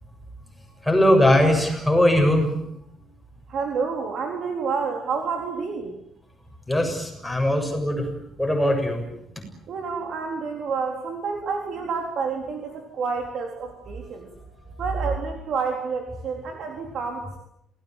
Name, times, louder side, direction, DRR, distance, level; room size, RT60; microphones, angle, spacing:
voice 1, 0.8-2.5 6.7-8.1 8.4-9.0 14.7-14.8, left 1 dB, 5° left, 2 dB, 7.1 m, -20 dB
voice 2, 3.5-5.9 9.7-14.3 14.8-17.4, right 5 dB, 50° right, 2 dB, 4.0 m, -29 dB
27.5 x 18.5 x 9.3 m, 0.78 s
cardioid pair, 150°, 0 cm